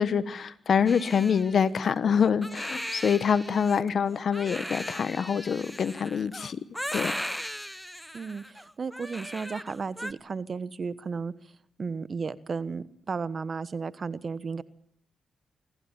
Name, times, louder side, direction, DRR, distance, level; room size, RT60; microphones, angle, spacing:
voice 1, 0.0-6.6 6.9-7.1, left 7 dB, 65° left, 15 dB, 1.2 m, -25 dB
Crying sobbing, 0.9-10.1, equal, 5° left, 0.9 m, -38 dB
voice 2, 8.1-11.3 11.8-14.6, right 5 dB, 50° right, 16 dB, 1.2 m, -34 dB
25.5 x 14.5 x 8.8 m, 0.69 s
cardioid pair, 60°, 0 cm